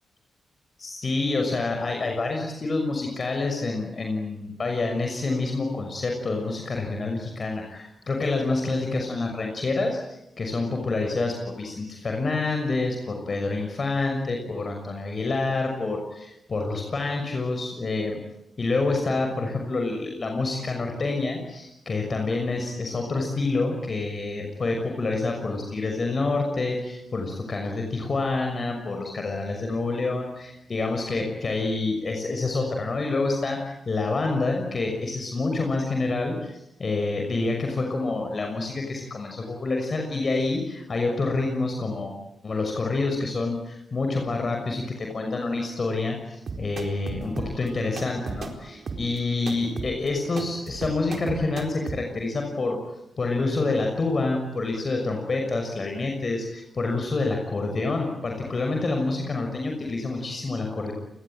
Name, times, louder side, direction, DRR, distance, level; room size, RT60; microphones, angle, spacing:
voice 1, 0.8-18.2 18.6-33.6 33.9-42.1 42.4-52.8 53.2-60.9, left 3 dB, 40° left, 3 dB, 6.2 m, -27 dB
sound 1, 46.5-52.0, right 4 dB, 50° right, 4.3 m, -36 dB
29.0 x 21.5 x 9.2 m, 0.79 s
cardioid pair, 115°, 0 cm